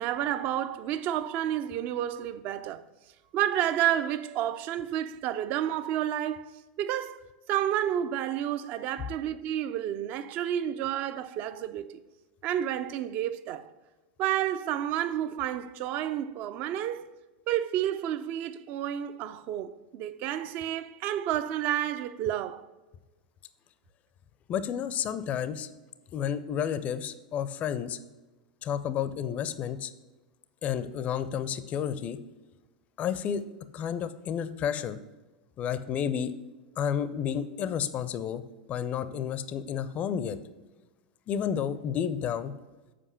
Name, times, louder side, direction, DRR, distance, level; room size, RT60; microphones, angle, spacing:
voice 1, 0.0-2.8 3.3-12.0 12.4-13.7 14.2-17.1 17.5-22.7, right 11 dB, 40° right, 0.4 m, -30 dB
voice 2, 24.5-25.7 26.1-28.0 28.6-29.9 30.6-32.2 33.0-33.4 33.7-35.0 35.6-36.3 36.8-38.4 38.7-40.4 41.3-42.5, left 8 dB, 30° left, 0.5 m, -31 dB
7.6 x 4.8 x 5.6 m
figure-of-eight pair, 90°, 4 cm